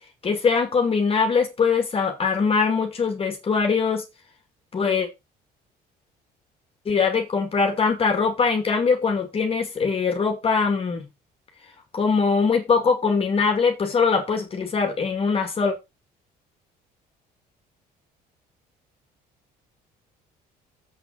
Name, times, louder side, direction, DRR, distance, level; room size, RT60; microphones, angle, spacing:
voice 1, 0.2-4.0 4.7-5.1 6.9-11.0 11.9-15.8, left 5 dB, 35° left, 2.4 m, -22 dB
7.8 x 6.0 x 5.8 m
cardioid pair, 110°, 17 cm